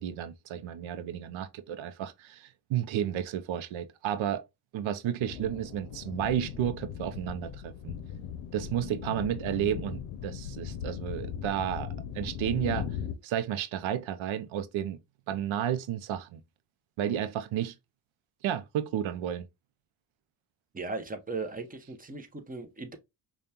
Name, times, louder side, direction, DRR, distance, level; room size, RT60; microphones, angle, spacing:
voice 1, 0.0-4.4 4.7-8.0 8.5-12.9 13.2-15.0 15.3-16.4 17.0-17.7 18.4-19.5, right 10 dB, 75° right, 0.6 m, -32 dB
sound 1, 5.2-13.1, left 8 dB, 80° left, 0.7 m, -38 dB
voice 2, 20.7-23.0, right 3 dB, 20° right, 0.8 m, -37 dB
5.1 x 2.4 x 2.8 m
cardioid pair, 85°, 48 cm